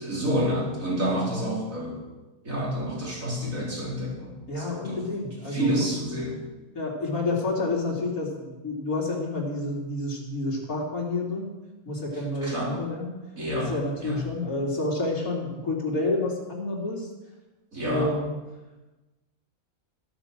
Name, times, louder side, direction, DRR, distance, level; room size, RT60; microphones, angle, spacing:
voice 1, 0.0-2.0 2.4-5.0 5.5-6.4 12.4-12.8 13.4-13.7 14.0-14.2 17.7-18.1, right 1 dB, 65° right, -3 dB, 4.6 m, -28 dB
voice 2, 4.5-5.9 6.7-11.5 11.9-13.1 13.5-17.1 17.8-18.3, left 2 dB, 80° left, -4 dB, 3.4 m, -29 dB
13.0 x 12.5 x 7.4 m, 1.1 s
omnidirectional pair, 1.5 m